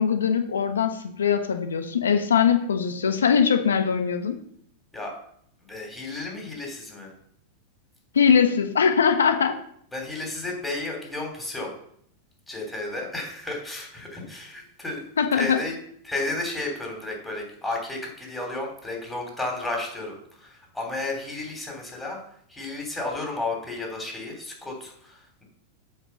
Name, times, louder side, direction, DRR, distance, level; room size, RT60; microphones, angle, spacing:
voice 1, 0.0-4.4 8.1-9.6 15.2-15.6, left 7 dB, 85° left, 7 dB, 1.0 m, -21 dB
voice 2, 5.6-7.1 9.9-11.7 12.5-15.0 15.3-15.7 16.0-22.2 22.5-25.4, left 2 dB, 10° left, 0 dB, 3.3 m, -33 dB
8.0 x 5.1 x 5.6 m, 0.66 s
hypercardioid pair, 100°, 0 cm